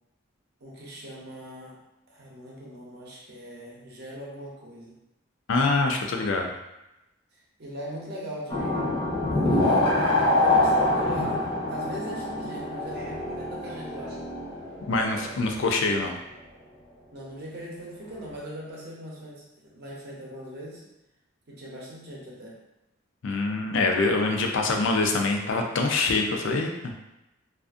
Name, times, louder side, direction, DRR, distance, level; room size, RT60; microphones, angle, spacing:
voice 1, 0.6-1.8 2.1-5.0 7.6-8.9 9.3-14.2 17.1-20.8 21.5-22.6, equal, 55° right, -4 dB, 0.7 m, -40 dB
voice 2, 5.5-6.5 14.9-16.2 23.2-26.9, left 3 dB, 65° left, 2 dB, 0.4 m, -25 dB
sound 1, 8.5-15.5, left 2 dB, 25° left, 0.6 m, -25 dB
2.5 x 2.4 x 2.4 m, 0.93 s
head